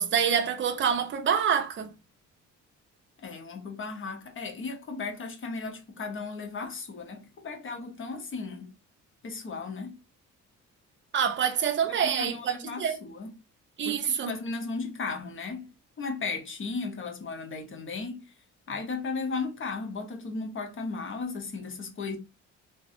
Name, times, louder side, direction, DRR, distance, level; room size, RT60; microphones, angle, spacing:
voice 1, 0.0-1.9 11.1-13.0 13.8-14.3, right 7 dB, 40° right, 0.6 m, -26 dB
voice 2, 3.2-8.7 9.2-10.0 11.9-13.4 13.8-18.3 18.7-22.2, left 4 dB, 40° left, 0.9 m, -36 dB
3.3 x 2.1 x 2.7 m
cardioid pair, 90°, 30 cm